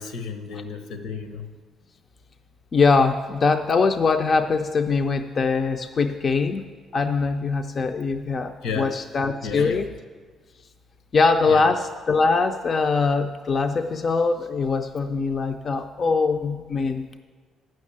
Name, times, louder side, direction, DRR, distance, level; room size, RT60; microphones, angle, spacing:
voice 1, 0.0-1.5 8.6-9.0 9.4-9.8 11.5-11.6, left 5 dB, 80° left, 7 dB, 1.1 m, -32 dB
voice 2, 2.7-6.6 6.9-9.9 11.1-17.2, left 4 dB, 30° left, 6 dB, 0.4 m, -22 dB
9.5 x 6.4 x 8.5 m, 1.4 s
cardioid pair, 170°, 0 cm